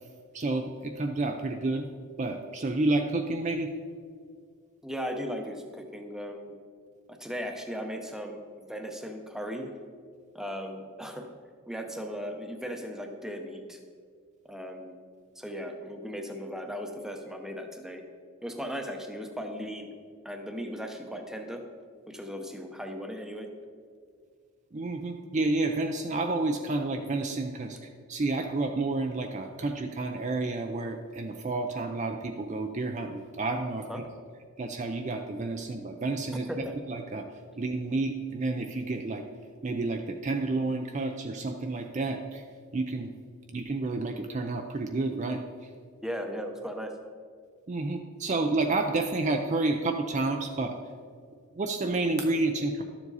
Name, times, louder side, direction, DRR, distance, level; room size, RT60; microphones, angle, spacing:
voice 1, 0.3-1.9 2.2-3.7 24.7-27.8 28.1-34.0 34.6-37.2 37.6-39.2 39.6-42.4 42.7-43.1 43.5-45.7 47.7-50.8 51.5-52.8, right 2 dB, 35° right, 4 dB, 0.4 m, -30 dB
voice 2, 4.8-6.6 7.1-9.7 10.3-11.3 11.7-13.8 14.4-15.0 15.4-18.0 18.4-19.9 20.2-21.6 22.1-23.5 33.9-34.0 36.3-36.7 46.0-46.9, equal, ahead, 4 dB, 0.7 m, -37 dB
12.0 x 7.2 x 4.0 m, 2.1 s
head